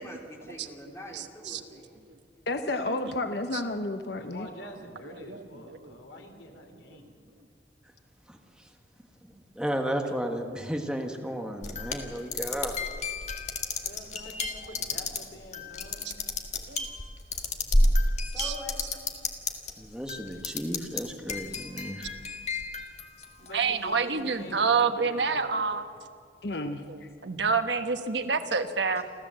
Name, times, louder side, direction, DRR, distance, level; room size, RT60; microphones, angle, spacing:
voice 1, 0.0-2.0 2.4-2.5 18.3-18.8 24.3-24.4 28.9-29.0, left 1 dB, 15° left, 0 dB, 3.2 m, -44 dB
voice 2, 1.1-1.8 2.1-2.2 2.9-3.1 3.5-3.8 5.3-6.0 10.2-10.6 16.0-16.1 16.7-16.8 18.4-18.5 23.5-25.9 26.8-29.0, right 5 dB, 75° right, 8 dB, 1.2 m, -29 dB
voice 3, 2.5-4.5 26.4-27.1, left 2 dB, 60° left, 7 dB, 1.0 m, -31 dB
voice 4, 4.1-7.2 13.8-16.1 17.6-17.7 23.4-25.7, left 1 dB, 85° left, 4 dB, 3.1 m, -46 dB
voice 5, 8.3-8.7 9.2-12.7 19.8-22.1, equal, 5° right, 3 dB, 1.4 m, -34 dB
sound 1, 11.6-19.7 20.1-21.0 21.3-23.7, left 2 dB, 40° left, 1.9 m, -30 dB
28.5 x 13.5 x 7.6 m, 2.2 s
head